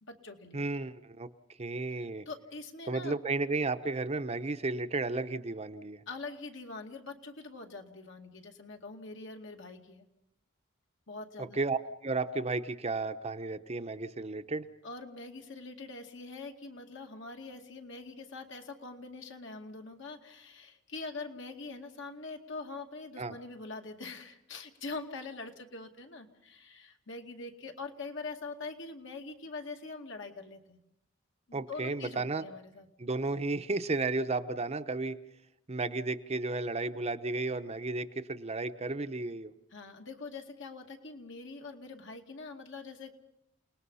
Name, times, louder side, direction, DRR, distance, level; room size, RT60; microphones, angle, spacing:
voice 1, 0.0-0.6 2.3-3.2 6.1-10.1 11.1-11.6 14.8-30.8 31.5-32.9 39.7-43.1, left 3 dB, 65° left, 3 dB, 2.4 m, -44 dB
voice 2, 0.5-1.3 1.6-2.3 2.9-6.0 11.4-14.7 23.2-23.4 31.5-32.4 33.0-35.2 35.7-39.5, right 3 dB, 35° right, 9 dB, 0.8 m, -33 dB
29.0 x 19.5 x 5.6 m, 0.83 s
head